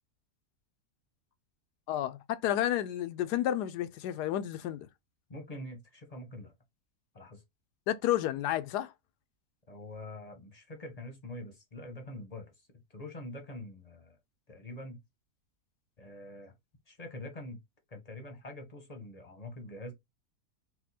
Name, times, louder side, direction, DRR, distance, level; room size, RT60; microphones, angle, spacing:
voice 1, 1.9-4.9 7.9-8.9, left 12 dB, 85° left, 1.1 m, -31 dB
voice 2, 5.3-6.5 7.1-7.4 9.7-12.5 12.9-14.2 14.5-15.0 16.0-16.5 16.9-17.6 17.9-19.9, left 1 dB, 30° left, 0.8 m, -44 dB
4.2 x 2.3 x 4.1 m
omnidirectional pair, 1.7 m